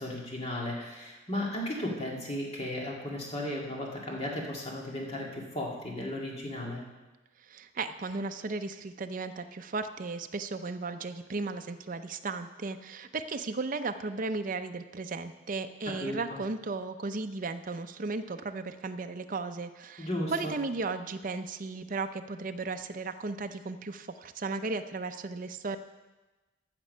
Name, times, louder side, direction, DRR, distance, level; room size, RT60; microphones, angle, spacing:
voice 1, 0.0-6.8 15.9-16.4 20.0-20.5, left 1 dB, 35° left, -2 dB, 2.1 m, -35 dB
voice 2, 7.5-25.8, right 3 dB, 45° right, 8 dB, 0.5 m, -35 dB
14.5 x 6.0 x 5.5 m, 1.1 s
head